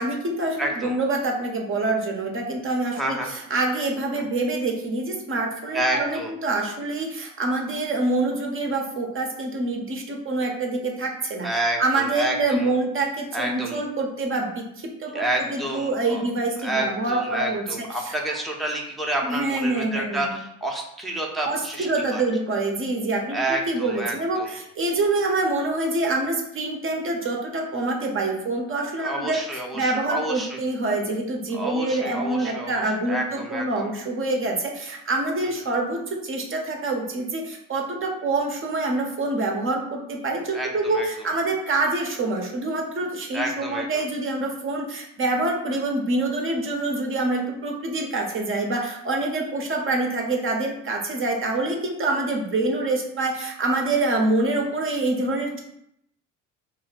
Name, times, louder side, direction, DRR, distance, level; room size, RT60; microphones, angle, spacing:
voice 1, 0.0-11.5 11.8-18.2 19.2-20.3 21.4-55.6, right 2 dB, 35° right, 1 dB, 0.7 m, -26 dB
voice 2, 0.6-0.9 2.9-3.3 4.1-4.2 5.7-6.3 11.4-12.7 13.3-13.8 15.1-16.2 16.6-22.2 23.3-24.5 29.0-30.5 31.5-33.9 40.5-40.7 40.9-41.1 43.3-44.0, right 1 dB, ahead, -1 dB, 0.7 m, -29 dB
2.6 x 2.1 x 4.0 m, 0.76 s
hypercardioid pair, 65°, 38 cm